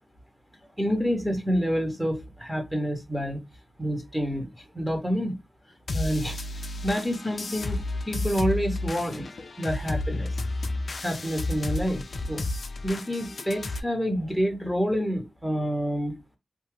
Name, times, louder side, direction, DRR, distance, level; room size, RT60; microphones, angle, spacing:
voice 1, 0.8-3.4 3.8-5.3 5.9-9.2 9.6-10.4 11.0-12.4 12.8-16.2, equal, ahead, 0.9 m, -28 dB
sound 1, 5.9-13.8, left 2 dB, 60° left, 0.4 m, -32 dB
2.7 x 2.3 x 3.1 m
wide cardioid pair, 95°, 0 cm